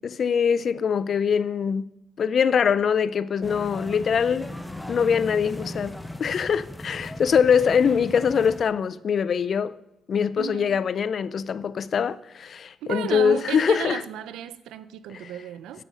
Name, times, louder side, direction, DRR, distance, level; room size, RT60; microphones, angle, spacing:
voice 1, 0.0-1.8 2.2-4.5 4.9-9.7 10.1-14.0 15.1-15.3, left 7 dB, 50° left, 0.4 m, -23 dB
sound 1, 3.4-8.6, left 1 dB, 5° left, 0.7 m, -37 dB
voice 2, 10.4-10.7 12.8-15.8, right 10 dB, 85° right, 0.5 m, -33 dB
8.3 x 8.2 x 5.5 m
cardioid pair, 90°, 0 cm